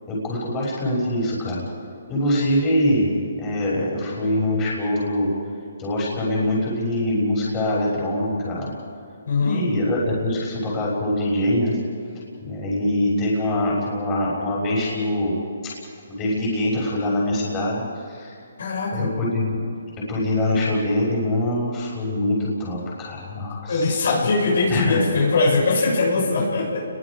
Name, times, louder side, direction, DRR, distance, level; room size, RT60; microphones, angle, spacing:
voice 1, 0.1-1.6 2.1-3.1 3.4-5.3 5.8-8.7 9.4-11.8 12.4-15.4 15.6-15.8 16.1-18.4 18.9-19.6 20.1-24.1 24.7-25.0, left 1 dB, 20° left, -5 dB, 6.4 m, -23 dB
voice 2, 9.3-9.6 18.6-19.1 23.7-26.9, left 3 dB, 65° left, -2 dB, 7.0 m, -21 dB
30.0 x 22.0 x 5.1 m, 2.5 s
hypercardioid pair, 150°, 0 cm